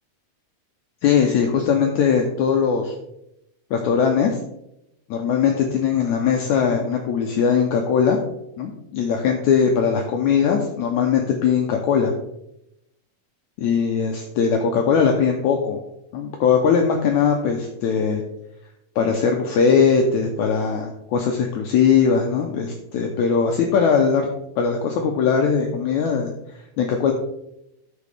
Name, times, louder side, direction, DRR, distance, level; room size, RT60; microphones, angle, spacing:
voice 1, 1.0-2.9 3.7-4.4 5.1-8.2 8.6-12.1 13.6-15.8 16.1-18.2 19.0-24.2 24.6-26.3 26.8-27.1, left 6 dB, 75° left, 2 dB, 1.8 m, -20 dB
13.5 x 4.8 x 3.4 m, 0.83 s
omnidirectional pair, 3.9 m